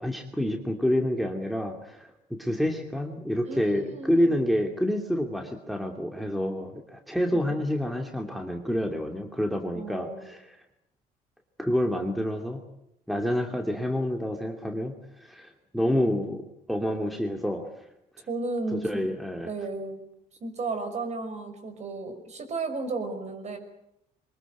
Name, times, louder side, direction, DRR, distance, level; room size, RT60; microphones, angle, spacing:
voice 1, 0.0-10.6 11.6-12.6 13.1-16.4 16.7-17.8 18.2-18.3 18.7-19.5, equal, ahead, 4 dB, 2.6 m, -28 dB
voice 2, 3.4-4.3 9.7-10.3 18.3-19.1 19.5-20.0 20.4-23.6, right 3 dB, 40° right, 8 dB, 5.9 m, -34 dB
24.0 x 20.5 x 9.3 m, 0.78 s
cardioid pair, 110°, 17 cm